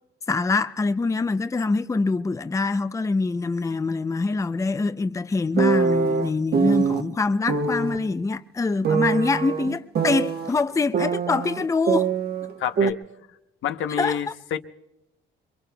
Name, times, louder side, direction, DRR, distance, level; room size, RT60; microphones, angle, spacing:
voice 1, 0.3-12.1 14.0-14.2, left 3 dB, 15° left, 0.5 m, -24 dB
sound 1, 5.6-7.0 7.5-8.0 8.8-10.5 10.9-12.5 12.8-12.9, right 6 dB, 55° right, 1.3 m, -23 dB
voice 2, 12.6-13.0 13.6-14.6, left 9 dB, 80° left, 0.9 m, -28 dB
27.0 x 22.5 x 2.3 m
cardioid pair, 90°, 20 cm